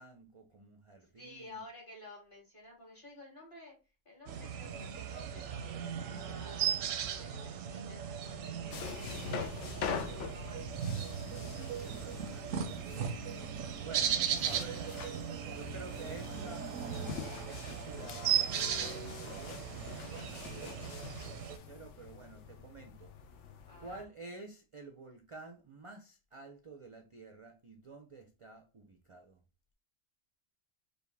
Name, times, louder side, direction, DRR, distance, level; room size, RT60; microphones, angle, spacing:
voice 1, 0.0-1.6 11.3-12.9 13.8-15.3 15.6-16.7 17.4-23.4 23.8-29.4, right 3 dB, 50° right, 0.4 m, -51 dB
voice 2, 1.2-3.7 4.1-11.0 13.9-14.0 23.7-24.1, left 2 dB, 40° left, 2.0 m, -53 dB
sound 1, 4.3-21.6, right 8 dB, 85° right, 1.0 m, -37 dB
sound 2, 8.7-24.0, left 6 dB, 70° left, 0.9 m, -44 dB
5.2 x 2.3 x 3.2 m
omnidirectional pair, 1.3 m